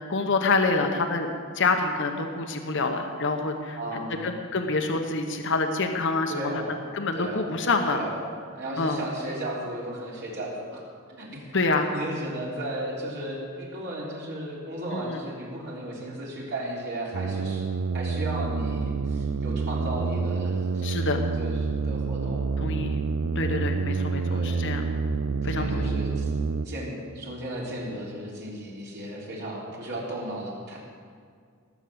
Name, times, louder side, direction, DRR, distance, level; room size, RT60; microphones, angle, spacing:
voice 1, 0.1-1.3 1.5-3.8 4.2-6.5 6.9-8.0 8.8-9.0 11.5-11.9 14.9-15.2 20.8-21.2 22.6-23.0 23.3-24.8 25.4-26.0, left 3 dB, 60° left, 5 dB, 1.1 m, -26 dB
voice 2, 3.8-4.3 6.3-7.6 7.9-8.2 8.5-10.8 11.1-11.5 11.9-17.6 17.9-20.9 21.3-22.7 24.3-24.6 25.5-30.8, right 1 dB, 55° right, -4 dB, 3.8 m, -35 dB
sound 1, 17.1-26.7, right 4 dB, 70° right, 0.5 m, -28 dB
18.5 x 7.3 x 8.0 m, 2.1 s
head